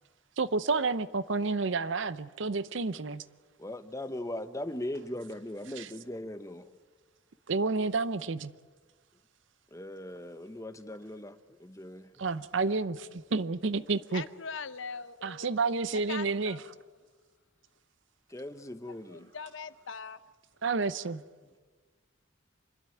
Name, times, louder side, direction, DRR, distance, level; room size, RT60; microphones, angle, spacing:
voice 1, 0.4-3.2 5.8-5.9 7.5-8.5 12.2-14.2 15.2-16.6 20.6-21.2, right 4 dB, 70° right, 0.7 m, -30 dB
voice 2, 3.6-6.7 9.7-12.1 18.3-19.3, left 1 dB, 15° left, 0.8 m, -39 dB
voice 3, 14.1-15.5 15.9-16.9 18.9-20.2, left 5 dB, 70° left, 0.8 m, -42 dB
26.5 x 12.5 x 9.2 m
head